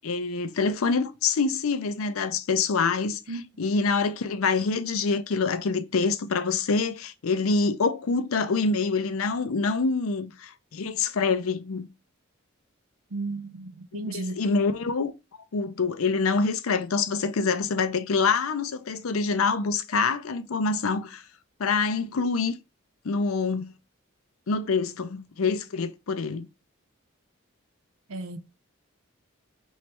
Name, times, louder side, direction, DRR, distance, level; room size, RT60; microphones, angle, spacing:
voice 1, 0.0-3.2 3.6-11.9 13.9-15.1 15.5-21.2 21.6-22.5 23.0-23.7 24.5-26.5, left 4 dB, 90° left, 0.5 m, -26 dB
voice 2, 13.1-14.4 28.1-28.4, right 2 dB, 85° right, 0.7 m, -34 dB
3.2 x 3.2 x 4.3 m
head